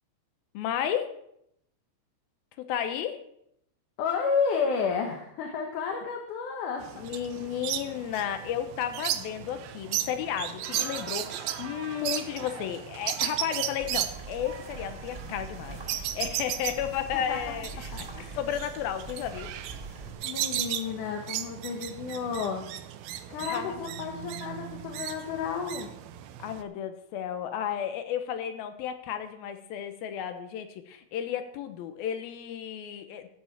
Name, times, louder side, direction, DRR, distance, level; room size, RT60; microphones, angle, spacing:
voice 1, 0.5-1.1 2.6-3.2 7.0-18.1 18.3-19.5 23.4-23.8 26.4-33.3, left 9 dB, 85° left, 8 dB, 2.8 m, -33 dB
voice 2, 4.0-7.1 17.1-17.4 18.1-18.4 20.2-22.6 23.3-25.9, left 5 dB, 65° left, 2 dB, 2.5 m, -31 dB
sound 1, 6.8-26.6, right 12 dB, 85° right, 2.6 m, -36 dB
sound 2, 10.6-16.3, right 7 dB, 60° right, 2.3 m, -45 dB
sound 3, 13.8-20.1, right 2 dB, 20° right, 2.0 m, -44 dB
13.0 x 5.8 x 8.3 m, 0.74 s
omnidirectional pair, 4.2 m